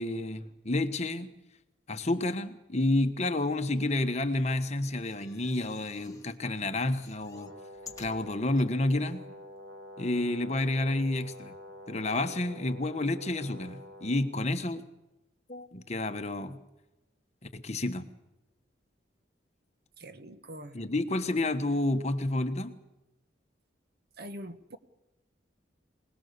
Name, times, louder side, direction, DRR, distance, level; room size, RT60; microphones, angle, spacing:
voice 1, 0.0-1.3 1.9-7.5 8.0-9.2 10.0-11.6 11.9-14.8 15.5-16.6 17.5-18.1 20.7-22.7, left 2 dB, 35° left, 1.3 m, -30 dB
sound 1, 4.1-6.4 6.7-8.7 9.3-9.4 9.6-9.7, left 6 dB, 20° left, 1.8 m, -53 dB
Brass instrument, 7.3-14.3, left 1 dB, 85° right, 5.5 m, -48 dB
voice 2, 20.0-20.8 24.2-24.8, right 1 dB, 55° right, 1.4 m, -43 dB
25.0 x 19.0 x 6.8 m
head